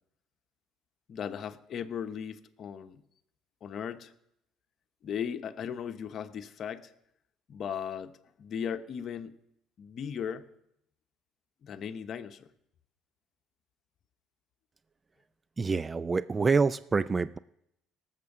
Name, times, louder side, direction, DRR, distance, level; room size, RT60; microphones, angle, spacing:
voice 1, 1.1-3.0 3.6-4.1 5.0-6.9 7.5-9.4 9.8-10.5 11.6-12.5, left 8 dB, 55° left, 10 dB, 0.9 m, -37 dB
voice 2, 15.6-17.4, right 4 dB, 30° right, 16 dB, 0.4 m, -27 dB
18.0 x 7.5 x 6.1 m, 0.79 s
hypercardioid pair, 65°, 0 cm